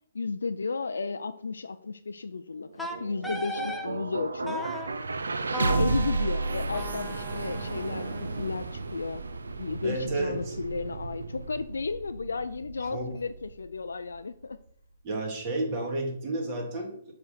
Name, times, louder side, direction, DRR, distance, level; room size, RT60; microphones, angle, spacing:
voice 1, 0.1-4.7 5.5-9.2 9.6-14.6, left 4 dB, 85° left, 9 dB, 0.4 m, -33 dB
sound 1, 2.6-14.7, right 3 dB, 90° right, 0.6 m, -33 dB
Wind instrument woodwind instrument, 2.8-3.9 4.5-4.9 5.5-8.5, left 1 dB, ahead, 0.7 m, -38 dB
voice 2, 9.8-10.6 12.9-13.1 15.0-17.1, right 2 dB, 35° right, 0 dB, 2.3 m, -31 dB
6.7 x 3.8 x 5.7 m, 0.65 s
hypercardioid pair, 145°, 0 cm